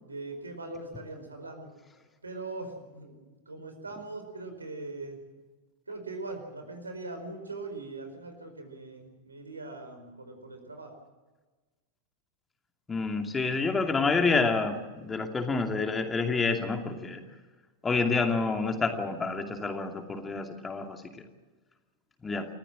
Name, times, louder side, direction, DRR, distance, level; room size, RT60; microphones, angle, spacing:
voice 1, 0.0-1.7 2.2-5.2 5.9-10.9, right 3 dB, 80° right, 6 dB, 4.8 m, -41 dB
voice 2, 12.9-17.2 17.8-21.0 22.2-22.5, left 4 dB, 15° left, 4 dB, 2.5 m, -28 dB
29.0 x 15.0 x 7.7 m, 1.2 s
figure-of-eight pair, 90°, 0 cm